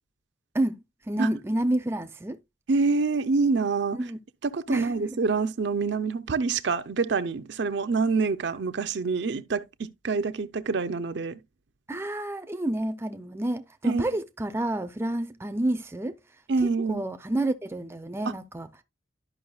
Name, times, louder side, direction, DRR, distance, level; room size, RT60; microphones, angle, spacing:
voice 1, 0.5-2.4 4.0-4.2 4.7-4.9 11.9-16.2 16.6-18.7, right 1 dB, 10° right, 0.5 m, -29 dB
voice 2, 2.7-4.0 4.4-11.4 13.8-14.1 16.5-17.0, right 4 dB, 60° right, 0.5 m, -26 dB
11.5 x 5.5 x 2.3 m
head